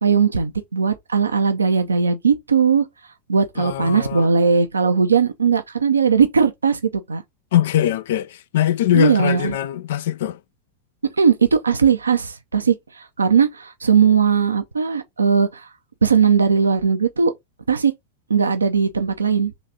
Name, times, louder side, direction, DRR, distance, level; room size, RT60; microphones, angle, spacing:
voice 1, 0.0-2.9 3.3-6.8 7.1-7.2 8.9-9.6 11.2-15.7 16.0-17.3 17.7-17.9 18.3-19.5, right 6 dB, 85° right, 0.5 m, -18 dB
voice 2, 3.6-4.3 7.5-10.4, left 12 dB, 65° left, 0.3 m, -21 dB
4.0 x 3.2 x 3.5 m
figure-of-eight pair, 90°, 0 cm